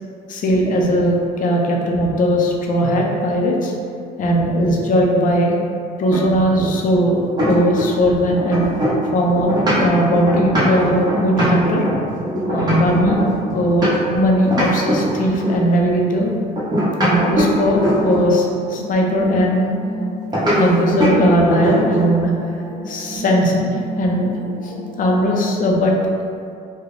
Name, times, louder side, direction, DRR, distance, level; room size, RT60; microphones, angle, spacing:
voice 1, 0.3-3.7 4.2-5.5 6.0-8.7 9.1-11.9 12.5-13.2 13.5-16.3 17.0-19.7 20.6-22.3 22.9-24.4 24.6-25.9, equal, 55° left, 0 dB, 0.6 m, -18 dB
sound 1, 6.1-8.1 8.4-14.2 14.5-15.7 16.6-18.3 20.3-20.6 21.0-21.2 21.5-22.1, right 1 dB, 25° right, 1.1 m, -21 dB
sound 2, 17.1-25.1, left 1 dB, 70° right, 0.8 m, -30 dB
3.8 x 2.2 x 3.2 m, 2.4 s
cardioid pair, 110°, 17 cm